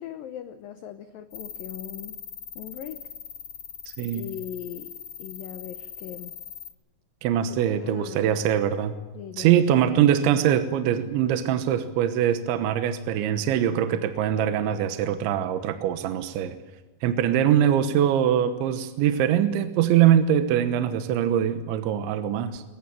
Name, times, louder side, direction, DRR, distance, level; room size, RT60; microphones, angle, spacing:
voice 1, 0.0-2.2 2.6-3.0 4.1-4.9 5.2-6.3 7.5-8.3 9.1-10.0, left 10 dB, 90° left, 10 dB, 2.0 m, -39 dB
sound 1, 1.3-6.7, left 8 dB, 60° left, 1.9 m, -41 dB
voice 2, 7.2-9.0 9.4-16.6 17.0-22.6, right 10 dB, 80° right, 9 dB, 3.3 m, -23 dB
21.5 x 21.0 x 9.0 m, 1.2 s
omnidirectional pair, 5.5 m